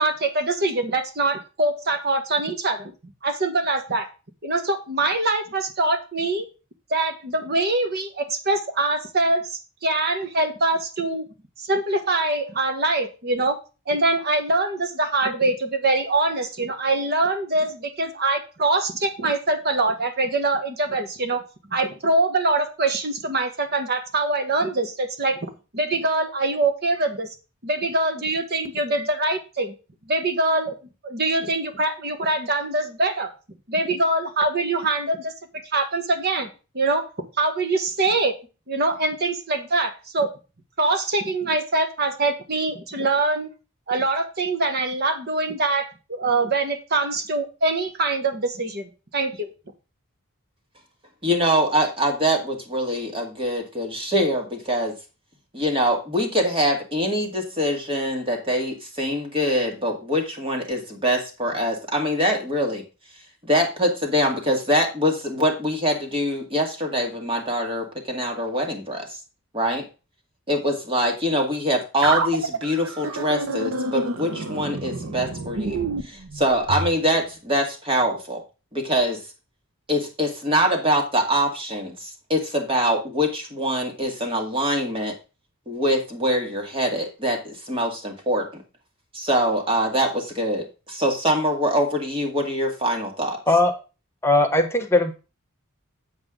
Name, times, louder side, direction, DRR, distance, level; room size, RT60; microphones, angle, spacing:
voice 1, 0.0-2.9 3.2-4.1 4.4-6.5 6.9-11.3 11.6-13.6 13.9-21.4 21.7-27.3 27.6-29.7 30.1-30.7 31.0-33.3 33.7-35.3 35.7-36.5 36.7-37.1 37.4-38.4 38.7-40.3 40.8-43.5 43.9-49.5, right 2 dB, 50° right, 8 dB, 1.4 m, -23 dB
voice 2, 51.2-54.9 55.5-62.8 63.4-69.2 69.5-69.8 70.5-78.4 78.7-79.2 79.9-85.2 85.7-88.6 89.1-93.4, equal, 25° right, 2 dB, 2.0 m, -24 dB
sound 1, 72.0-76.9, right 3 dB, 75° right, 1.0 m, -28 dB
voice 3, 94.2-95.2, left 2 dB, 10° left, 3 dB, 1.1 m, -19 dB
8.0 x 7.5 x 3.7 m, 0.31 s
head